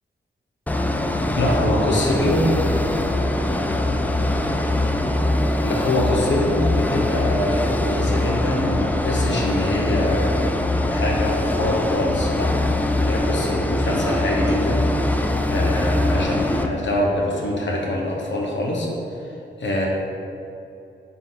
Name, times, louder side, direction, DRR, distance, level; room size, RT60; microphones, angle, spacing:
sound 1, 0.7-16.7, left 1 dB, 10° left, 0.4 m, -22 dB
voice 1, 1.4-2.6 5.6-10.4 10.9-12.5 13.0-18.9 19.6-19.9, left 1 dB, 70° left, -2 dB, 1.3 m, -24 dB
9.4 x 4.2 x 4.1 m, 2.8 s
wide cardioid pair, 130°, 20 cm